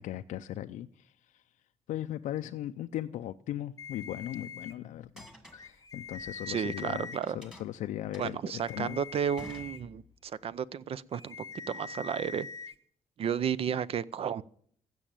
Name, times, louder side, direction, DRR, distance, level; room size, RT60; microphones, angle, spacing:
voice 1, 0.0-1.4 1.9-5.3 5.5-9.0, left 12 dB, 85° left, 0.5 m, -38 dB
sound 1, 3.8-4.7 5.5-7.2 8.5-9.8 11.1-12.7, left 5 dB, 30° left, 0.9 m, -44 dB
sound 2, 5.2-6.9 7.2-10.3, equal, 5° right, 1.9 m, -51 dB
voice 2, 6.5-7.4 8.2-11.4 11.7-12.5 13.2-14.4, right 8 dB, 50° right, 0.5 m, -32 dB
15.5 x 6.3 x 8.9 m
cardioid pair, 115°, 12 cm